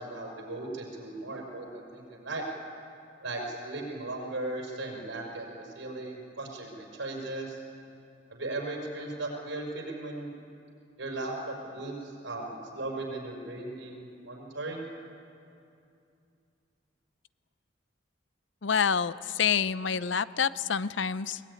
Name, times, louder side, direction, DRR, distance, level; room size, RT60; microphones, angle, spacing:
voice 1, 0.0-2.4 3.2-7.6 8.3-10.3 11.0-14.9, right 2 dB, 85° right, 1 dB, 5.3 m, -37 dB
voice 2, 18.6-21.4, left 7 dB, 75° left, 15 dB, 0.6 m, -27 dB
22.0 x 20.0 x 9.7 m, 2.6 s
head